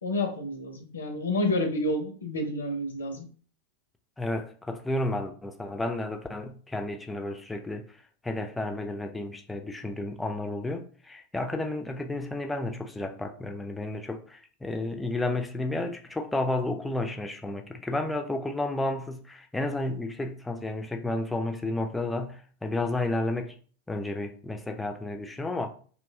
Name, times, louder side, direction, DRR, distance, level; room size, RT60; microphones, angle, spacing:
voice 1, 0.0-3.2, left 1 dB, 70° left, 0.5 m, -29 dB
voice 2, 4.2-7.9 8.2-23.6 23.9-25.7, left 2 dB, 10° left, 0.3 m, -32 dB
2.7 x 2.2 x 2.6 m
figure-of-eight pair, 90°, 0 cm